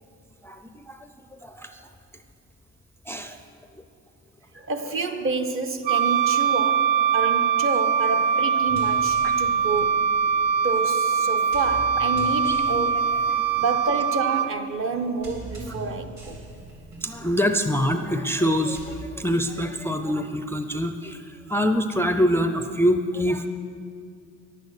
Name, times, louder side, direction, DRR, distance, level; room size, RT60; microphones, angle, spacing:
voice 1, 0.4-1.1 1.4-1.8 3.1-3.4 9.2-9.3 12.5-12.6 13.3-13.4 17.0-23.5, equal, 10° left, 0.4 m, -25 dB
voice 2, 4.5-10.1 10.6-13.2 13.6-16.4, right 3 dB, 40° right, 0.9 m, -29 dB
Wind instrument woodwind instrument, 5.9-14.5, right 7 dB, 80° right, 0.5 m, -22 dB
sound 1, 8.6-19.0, right 1 dB, 60° right, 2.6 m, -43 dB
10.5 x 8.4 x 6.5 m
cardioid pair, 100°, 32 cm